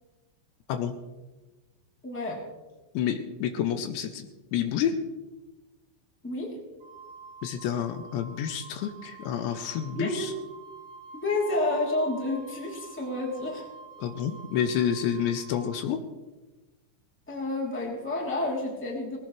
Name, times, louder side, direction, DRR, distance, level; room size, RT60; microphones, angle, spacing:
voice 1, 2.0-2.4 6.2-6.5 9.9-10.3 11.1-13.6 17.3-19.2, left 2 dB, 5° left, -3 dB, 2.2 m, -29 dB
voice 2, 2.9-5.0 7.4-10.3 14.0-16.0, left 9 dB, 80° left, 7 dB, 2.9 m, -29 dB
Wind instrument woodwind instrument, 6.8-15.8, right 4 dB, 85° right, 6.4 m, -48 dB
19.5 x 17.5 x 3.3 m, 1.2 s
omnidirectional pair, 5.3 m